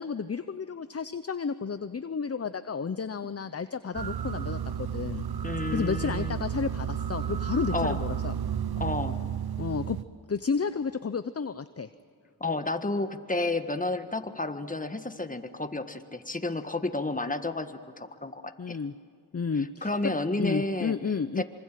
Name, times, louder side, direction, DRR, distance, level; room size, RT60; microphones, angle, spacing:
voice 1, 0.0-5.2 5.7-8.3 9.6-10.0 10.3-11.9 18.6-18.9 19.3-21.4, left 5 dB, 40° left, 12 dB, 0.8 m, -32 dB
sound 1, 3.9-10.0, right 9 dB, 70° right, 0.9 m, -32 dB
voice 2, 5.4-6.4 7.7-8.0 8.8-9.2 12.4-18.8 19.6-21.0 21.4-21.5, left 2 dB, 20° left, 8 dB, 1.6 m, -31 dB
25.5 x 25.0 x 7.7 m, 2.2 s
wide cardioid pair, 60°, 39 cm